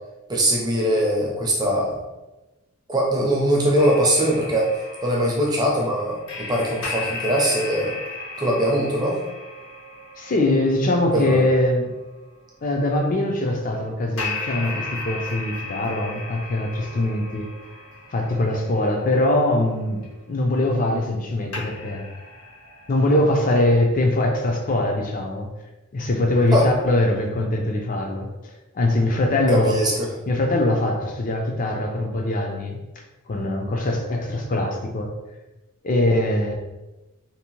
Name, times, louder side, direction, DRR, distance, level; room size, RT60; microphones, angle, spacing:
voice 1, 0.3-2.0 2.9-4.7 5.0-7.9 8.4-9.2 11.1-11.4 26.5-26.7 29.5-30.1, equal, 20° right, -3 dB, 0.5 m, -21 dB
sound 1, 3.8-12.5 14.2-21.3 21.5-23.2, left 3 dB, 80° left, 0.6 m, -36 dB
voice 2, 10.2-11.9 12.6-17.5 18.1-20.0 20.3-22.1 22.9-25.5 25.9-29.7 30.3-32.8 33.3-35.1 35.8-36.5, left 1 dB, 40° left, 2 dB, 0.4 m, -22 dB
2.7 x 2.1 x 2.9 m, 1.1 s
head